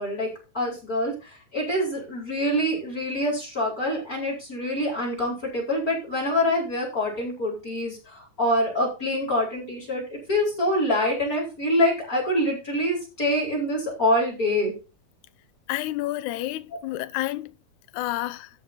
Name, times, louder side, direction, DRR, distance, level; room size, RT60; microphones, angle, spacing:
voice 1, 0.0-14.8, left 1 dB, 25° left, 4.9 m, -25 dB
voice 2, 15.7-17.5 17.9-18.5, left 16 dB, 80° left, 1.9 m, -29 dB
14.0 x 5.6 x 4.3 m
omnidirectional pair, 3.8 m